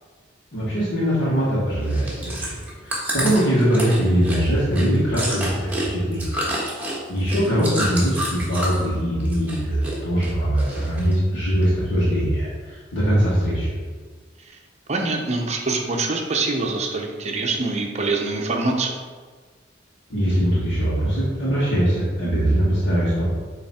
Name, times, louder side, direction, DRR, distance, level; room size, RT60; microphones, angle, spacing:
voice 1, 0.5-6.3 7.1-13.7 20.1-23.3, equal, 60° left, -10 dB, 1.9 m, -21 dB
Chewing mastication, 1.8-8.9 9.2-10.0 10.2-11.1 11.6-11.7, right 1 dB, 10° right, 1.3 m, -28 dB
voice 2, 14.9-19.0, right 3 dB, 35° right, 2 dB, 0.7 m, -24 dB
8.1 x 3.2 x 4.3 m, 1.5 s
head